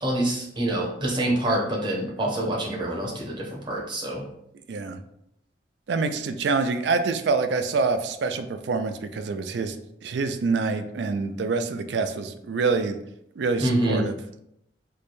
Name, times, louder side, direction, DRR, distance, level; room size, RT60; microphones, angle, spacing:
voice 1, 0.0-4.2 13.6-14.0, right 1 dB, 25° right, -3 dB, 0.8 m, -26 dB
voice 2, 4.7-5.0 5.9-9.8 10.0-13.0 13.4-14.2, right 4 dB, 65° right, 8 dB, 0.4 m, -26 dB
3.2 x 2.2 x 4.2 m, 0.76 s
head